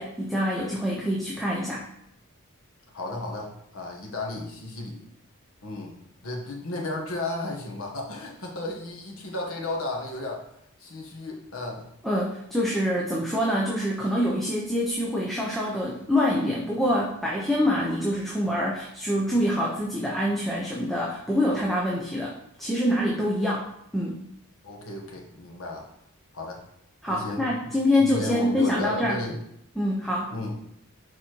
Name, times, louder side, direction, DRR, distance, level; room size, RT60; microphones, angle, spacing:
voice 1, 0.0-1.8 12.0-23.7 23.9-24.2 27.0-29.2 29.8-30.3, left 1 dB, ahead, -5 dB, 0.8 m, -25 dB
voice 2, 2.9-5.0 5.6-10.5 10.8-11.9 24.6-25.9 26.3-26.6 27.1-29.4 30.3-30.6, left 2 dB, 70° left, -1 dB, 1.5 m, -34 dB
6.8 x 4.3 x 4.5 m, 0.76 s
head